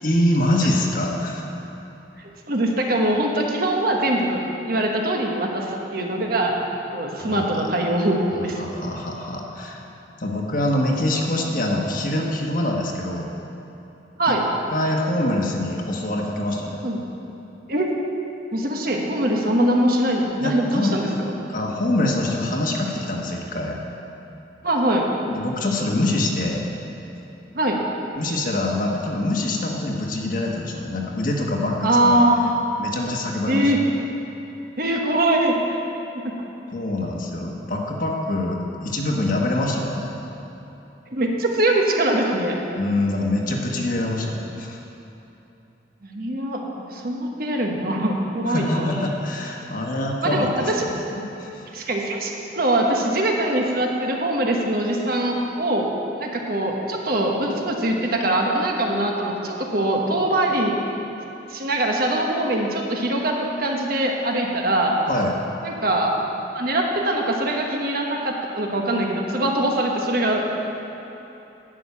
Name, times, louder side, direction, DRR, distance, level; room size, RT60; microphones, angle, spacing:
voice 1, 0.0-1.4 7.2-7.7 8.6-9.8 10.2-13.3 14.7-16.8 20.4-21.0 21.5-23.7 25.2-26.7 28.2-31.7 32.0-32.2 32.8-33.7 36.7-40.1 42.8-44.8 48.5-51.6 65.1-65.4, left 1 dB, 50° left, 0 dB, 1.3 m, -25 dB
voice 2, 2.5-6.6 6.9-8.6 14.2-14.5 16.8-17.0 17.7-17.9 18.5-21.1 24.6-25.1 27.5-27.8 31.8-32.5 33.5-33.8 34.8-35.8 36.1-36.3 41.1-42.5 46.0-48.9 50.2-50.8 51.7-55.9 56.2-60.8 61.5-64.9 65.6-66.1 66.5-70.5, right 1 dB, 55° right, 0 dB, 1.3 m, -22 dB
11.0 x 6.4 x 8.4 m, 3.0 s
head